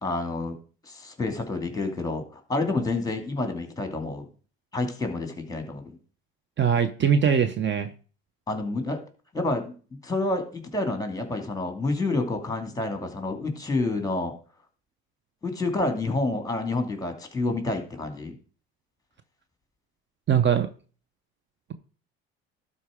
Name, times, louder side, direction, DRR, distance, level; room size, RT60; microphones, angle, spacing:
voice 1, 0.0-0.6 0.8-4.3 4.7-6.0 8.5-9.0 9.3-14.3 15.4-18.4, left 2 dB, 10° left, 6 dB, 2.4 m, -29 dB
voice 2, 6.6-7.9 20.3-20.7, right 7 dB, 40° right, 10 dB, 0.9 m, -21 dB
12.0 x 4.3 x 5.0 m, 0.39 s
supercardioid pair, 75°, 29 cm